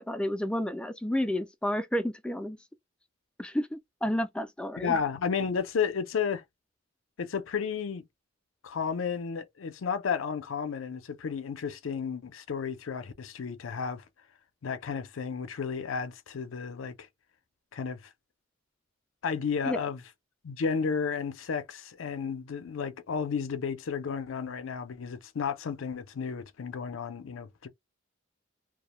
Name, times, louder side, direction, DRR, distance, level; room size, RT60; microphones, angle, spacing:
voice 1, 0.0-2.6 3.4-5.0 19.6-19.8, equal, 5° left, 0.3 m, -31 dB
voice 2, 4.8-6.4 7.2-8.0 8.6-14.0 14.6-17.1 17.7-18.0 19.2-20.0 20.4-27.7, left 6 dB, 75° left, 0.5 m, -32 dB
2.3 x 2.1 x 3.0 m
head